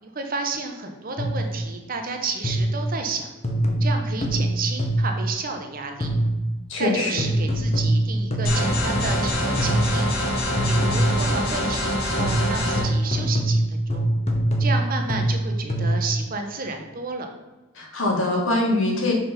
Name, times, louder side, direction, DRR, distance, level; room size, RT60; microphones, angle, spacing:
voice 1, 0.0-3.3 3.8-6.1 6.8-10.1 10.6-14.1 14.6-17.3, right 3 dB, 40° right, 4 dB, 0.9 m, -31 dB
sound 1, 1.2-1.6 2.4-2.9 3.4-5.2 6.0-6.5 7.2-9.3 9.6-10.1 10.6-11.3 12.2-16.2, right 1 dB, 30° left, 0.8 m, -23 dB
voice 2, 6.7-7.2 17.7-19.1, left 2 dB, 65° left, -1 dB, 1.7 m, -23 dB
sound 2, 8.4-12.8, left 1 dB, 80° left, 1.8 m, -25 dB
6.0 x 4.2 x 5.5 m, 1.1 s
head